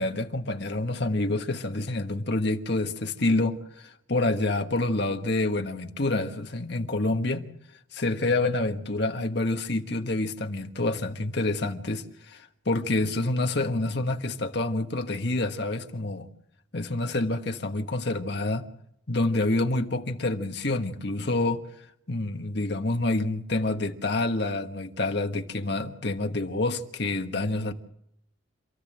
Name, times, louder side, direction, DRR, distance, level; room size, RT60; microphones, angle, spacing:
voice 1, 0.0-7.5 7.9-16.3 16.7-18.7 19.1-21.6 22.1-27.7, left 2 dB, 55° left, 1.4 m, -27 dB
27.5 x 13.5 x 7.7 m
head